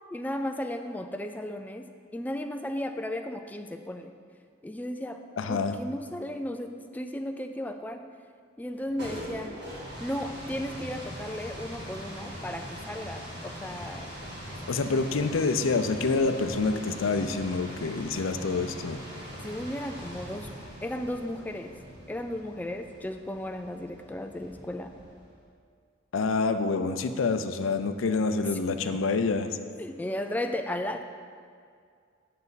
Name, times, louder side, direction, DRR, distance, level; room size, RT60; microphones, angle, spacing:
voice 1, 0.1-4.1 4.6-5.2 5.5-8.0 8.6-9.6 10.0-14.1 14.6-15.4 19.4-20.5 20.8-21.7 22.1-24.9 29.8-31.0, left 1 dB, 10° left, 6 dB, 0.3 m, -35 dB
voice 2, 5.4-5.8 14.7-19.0 26.1-29.6, left 4 dB, 90° left, 9 dB, 0.5 m, -27 dB
sound 1, 8.7-25.4, equal, 55° right, 2.0 m, -42 dB
9.3 x 6.6 x 4.0 m, 2.2 s
head